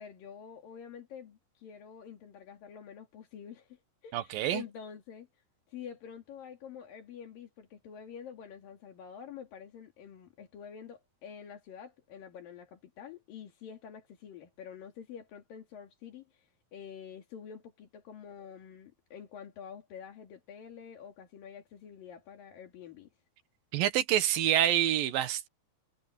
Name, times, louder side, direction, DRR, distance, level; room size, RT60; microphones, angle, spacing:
voice 1, 0.0-5.3 5.7-23.1, left 7 dB, 80° left, 4.2 m, -47 dB
voice 2, 4.1-4.6 23.7-25.5, right 12 dB, 85° right, 3.0 m, -27 dB
omnidirectional pair, 4.0 m